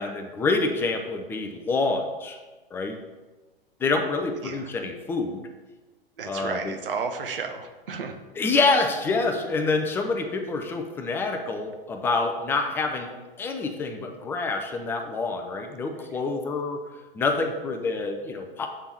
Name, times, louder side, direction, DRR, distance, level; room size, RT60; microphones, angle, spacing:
voice 1, 0.0-2.4 2.7-3.0 3.8-5.4 6.3-6.8 8.4-13.1 13.4-16.8 17.1-18.7, left 3 dB, 10° left, 5 dB, 0.3 m, -27 dB
voice 2, 6.2-8.2, right 5 dB, 70° right, 6 dB, 0.9 m, -32 dB
7.4 x 3.5 x 4.3 m, 1.2 s
figure-of-eight pair, 105°, 29 cm